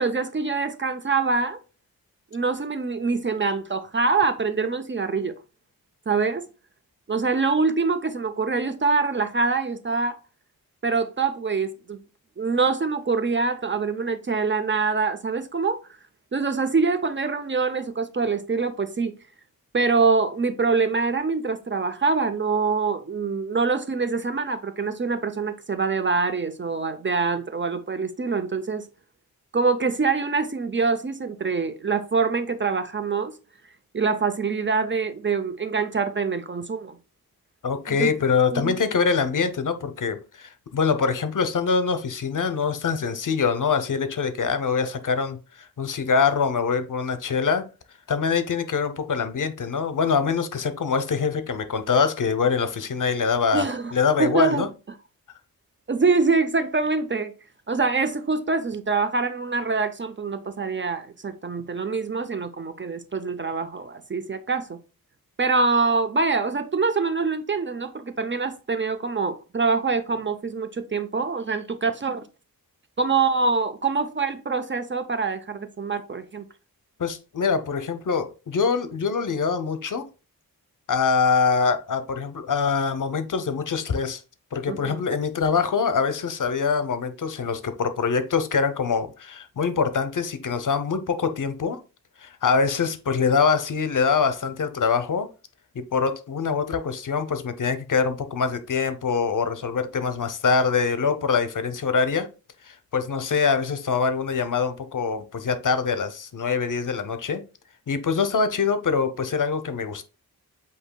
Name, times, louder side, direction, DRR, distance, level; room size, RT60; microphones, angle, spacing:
voice 1, 0.0-1.6 2.3-5.3 6.1-6.5 7.1-10.2 10.8-12.0 12.4-15.8 16.3-19.1 19.7-28.9 29.5-33.3 33.9-37.0 37.9-38.1 38.5-38.8 53.5-53.9 54.2-54.6 55.9-57.3 57.7-64.8 65.4-72.2 73.0-76.4 84.7-85.0, right 4 dB, 30° right, 0.5 m, -24 dB
voice 2, 37.6-47.6 48.1-53.7 53.9-54.7 77.0-80.0 80.9-84.2 84.5-91.8 92.2-95.3 95.8-102.3 102.6-107.4 107.9-110.0, left 5 dB, 60° left, 0.7 m, -24 dB
7.9 x 2.8 x 2.2 m
wide cardioid pair, 90°, 36 cm